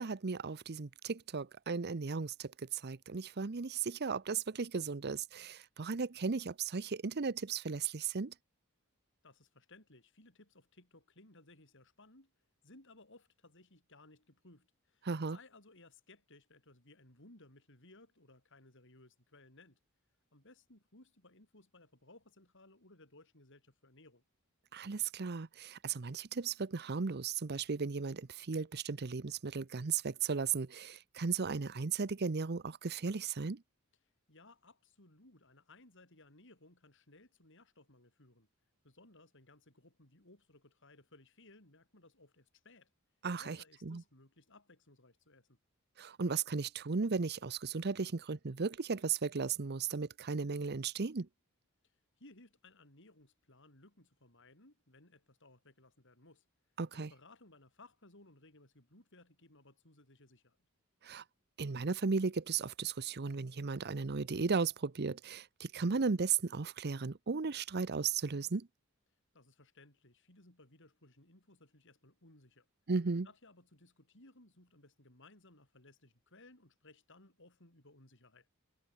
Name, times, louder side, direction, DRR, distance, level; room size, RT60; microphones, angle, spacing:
voice 1, 0.0-8.3 15.0-15.4 24.7-33.6 43.2-43.6 43.9-44.0 46.0-51.3 56.8-57.1 61.0-61.2 61.6-68.7 72.9-73.3, right 5 dB, 50° right, 0.7 m, -36 dB
voice 2, 9.2-12.3 12.6-19.8 20.3-24.2 34.3-38.5 38.8-42.9 43.4-45.6 51.8-56.5 56.9-60.6 69.3-72.7 73.2-78.5, left 2 dB, 60° left, 7.6 m, -61 dB
head